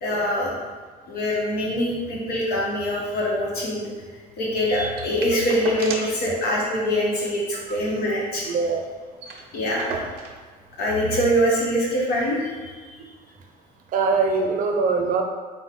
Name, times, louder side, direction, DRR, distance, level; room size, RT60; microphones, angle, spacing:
voice 1, 0.0-0.5 1.1-3.9 4.4-8.4 9.5-10.0 10.8-12.7, equal, 75° left, -4 dB, 1.2 m, -24 dB
sound 1, 5.0-6.2 6.6-6.7 6.9-7.1 7.5-8.6 8.9-9.0 9.2-10.4 11.3-11.4, right 4 dB, 90° right, 0.6 m, -35 dB
voice 2, 8.4-8.9 13.9-15.2, right 4 dB, 55° right, 2 dB, 0.6 m, -22 dB
4.4 x 2.3 x 3.7 m, 1.5 s
cardioid pair, 110°, 17 cm